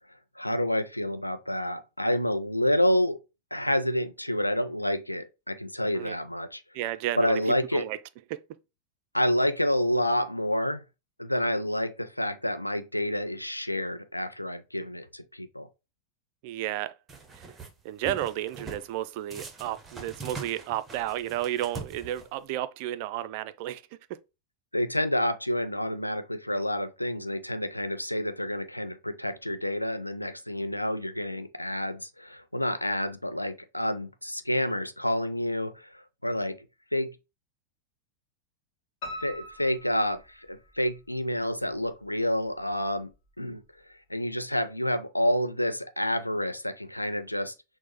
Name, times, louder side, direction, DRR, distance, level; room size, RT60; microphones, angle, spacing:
voice 1, 0.4-3.2 3.5-6.6 7.2-7.9 9.1-10.8 11.2-15.7 24.7-36.6 36.9-37.2 39.1-43.1 43.4-43.6 43.9-47.5, left 1 dB, 85° left, 0.4 m, -29 dB
voice 2, 6.7-8.0 8.3-8.4 16.4-16.9 17.3-17.5 17.8-23.8, right 13 dB, 45° right, 0.3 m, -32 dB
sound 1, 17.1-17.7 18.1-18.9 19.3-22.5, right 4 dB, 15° right, 0.7 m, -42 dB
Piano, 39.0-40.9 41.4-42.2 42.5-42.6 43.1-43.2 43.4-43.5, left 1 dB, 40° left, 1.4 m, -42 dB
6.0 x 2.0 x 2.9 m
figure-of-eight pair, 90°, 0 cm